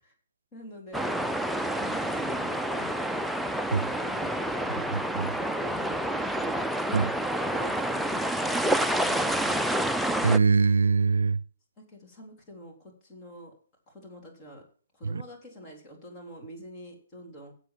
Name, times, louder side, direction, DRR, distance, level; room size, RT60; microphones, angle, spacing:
voice 1, 0.5-1.2 1.8-3.0 3.7-4.9 5.3-9.6 11.8-13.5 13.9-14.6 14.9-17.5, equal, 25° left, 3.7 m, -45 dB
sound 1, 0.9-10.4, right 1 dB, ahead, 0.4 m, -28 dB
voice 2, 4.9-5.3 6.9-7.1 10.2-11.4 15.0-15.2, right 4 dB, 85° right, 0.5 m, -23 dB
8.2 x 7.6 x 5.9 m
hypercardioid pair, 140°, 0 cm